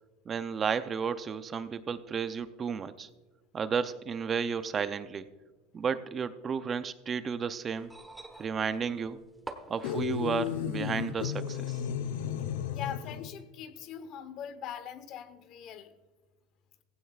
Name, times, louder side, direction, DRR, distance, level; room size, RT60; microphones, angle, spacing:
voice 1, 0.3-3.1 3.5-5.2 5.7-7.9 8.4-9.2 9.7-11.8, right 6 dB, 25° right, 12 dB, 0.5 m, -32 dB
sound 1, 7.8-10.7 11.8-11.9, right 2 dB, 10° right, 1.1 m, -47 dB
sound 2, 9.8-13.3, left 9 dB, 90° left, 0.6 m, -34 dB
voice 2, 12.7-15.9, left 9 dB, 50° left, 12 dB, 1.1 m, -41 dB
16.0 x 15.5 x 2.4 m, 1.3 s
supercardioid pair, 135°, 0 cm